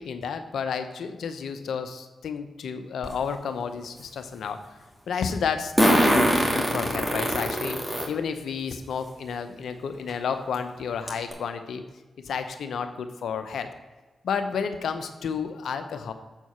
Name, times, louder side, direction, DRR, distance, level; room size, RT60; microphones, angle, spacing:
voice 1, 0.0-4.6 5.1-11.8 12.2-13.7 14.2-16.1, left 6 dB, 80° left, 8 dB, 0.7 m, -31 dB
Fart, 3.0-3.1 5.8-8.1 8.7-8.8 10.1-10.2 10.5-10.6 11.1-11.3, equal, 5° right, 2.4 m, -22 dB
7.4 x 4.6 x 5.5 m, 1.2 s
supercardioid pair, 40°, 0 cm